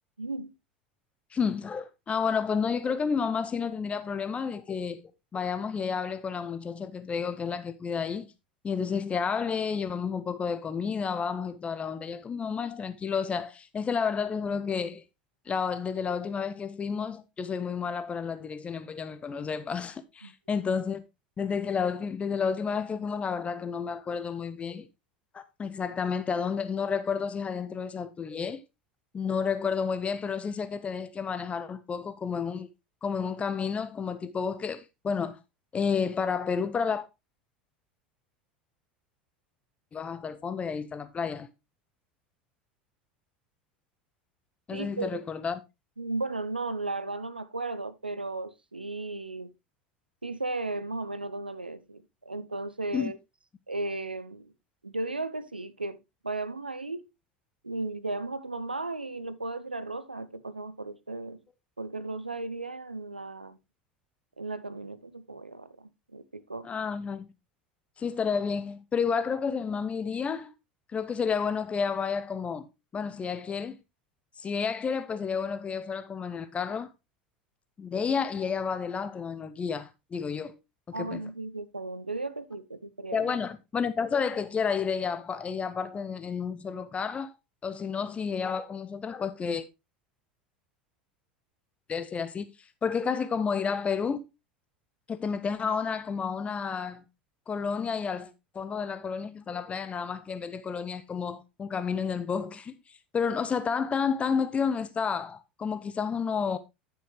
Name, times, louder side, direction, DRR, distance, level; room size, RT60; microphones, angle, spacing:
voice 1, 0.2-0.5 20.2-20.3 44.7-45.2 46.0-49.5 50.2-53.2 53.7-54.5 54.8-56.0 56.2-57.1 57.6-61.4 61.8-63.6 64.4-66.7 80.9-83.3, right 2 dB, 90° right, 0.5 m, -35 dB
voice 2, 1.3-5.0 5.3-8.3 8.6-15.0 15.5-21.0 21.4-24.9 25.3-28.6 29.1-32.7 33.0-35.4 35.7-37.0 39.9-41.5 44.7-45.6 52.9-53.1 66.6-67.3 68.0-70.5 70.9-72.7 72.9-73.8 74.4-76.9 77.8-80.5 80.9-81.2 83.1-87.3 87.6-89.6 91.9-92.5 92.8-94.2 95.1-97.0 97.5-102.8 103.1-106.6, left 6 dB, 25° left, 0.7 m, -31 dB
10.5 x 6.3 x 3.2 m
figure-of-eight pair, 75°, 5 cm